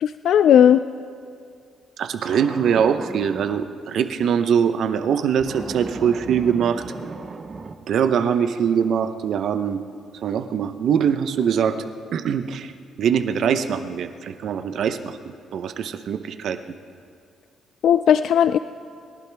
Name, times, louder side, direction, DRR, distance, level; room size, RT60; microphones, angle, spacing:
voice 1, 0.0-0.8 17.8-18.6, left 9 dB, 70° left, 12 dB, 0.3 m, -16 dB
voice 2, 2.0-6.9 7.9-9.8 10.2-11.8 12.1-12.7 13.0-16.6, right 7 dB, 70° right, 9 dB, 0.8 m, -22 dB
sound 1, 2.2-3.7 5.4-7.7, right 4 dB, 35° right, 1.0 m, -36 dB
27.5 x 11.5 x 3.5 m, 2.3 s
cardioid pair, 90°, 0 cm